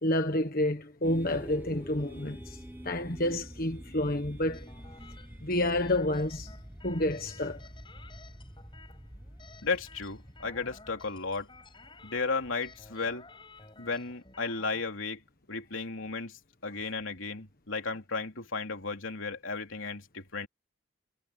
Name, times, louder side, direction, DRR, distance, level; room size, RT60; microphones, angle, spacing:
voice 1, 0.0-2.6 2.8-4.7 5.4-6.5 6.8-7.6, left 1 dB, 45° left, 1.4 m, -29 dB
sound 1, 1.0-13.9, equal, 10° right, 1.3 m, -48 dB
sound 2, 1.3-4.9, equal, 10° left, 4.7 m, -50 dB
sound 3, 4.5-14.9, left 3 dB, 25° left, 6.2 m, -54 dB
voice 2, 9.6-11.5 12.0-13.3 13.8-15.2 15.5-20.5, left 4 dB, 80° left, 3.2 m, -34 dB
head